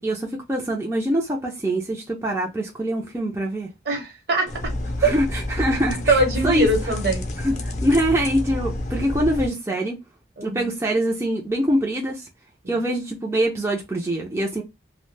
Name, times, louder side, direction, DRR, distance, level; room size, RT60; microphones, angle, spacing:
voice 1, 0.0-3.7 5.0-6.7 7.4-10.0 10.4-12.3 12.7-14.6, right 1 dB, 15° right, 0.4 m, -24 dB
voice 2, 3.9-4.7 5.0-5.1 6.1-7.3 10.4-10.7 12.6-12.7, right 2 dB, 65° right, 0.9 m, -22 dB
sound 1, 4.5-9.5, left 1 dB, 40° left, 0.5 m, -29 dB
2.3 x 2.0 x 3.2 m
head